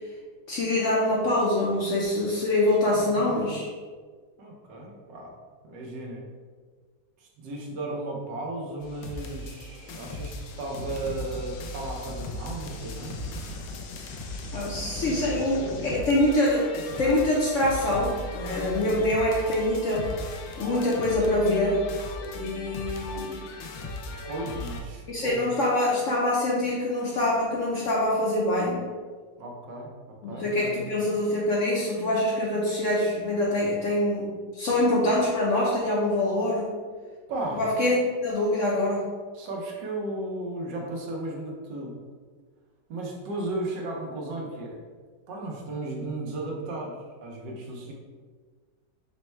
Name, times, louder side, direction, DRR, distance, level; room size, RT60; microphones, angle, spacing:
voice 1, 0.5-3.7 14.5-16.7 17.0-20.2 20.6-21.9 22.3-23.4 25.1-28.8 30.2-36.7 37.5-37.9 38.2-39.1, left 1 dB, 65° left, -5 dB, 0.8 m, -25 dB
voice 2, 2.9-3.7 4.4-5.3 5.6-6.2 7.2-13.2 24.3-25.4 29.4-29.9 30.3-30.9 37.3-37.6 39.3-42.0 42.9-44.8 45.3-47.9, right 2 dB, 85° right, -1 dB, 1.5 m, -35 dB
sound 1, 8.8-24.8, left 1 dB, 90° left, 1.3 m, -37 dB
4.3 x 2.1 x 4.3 m, 1.5 s
omnidirectional pair, 1.9 m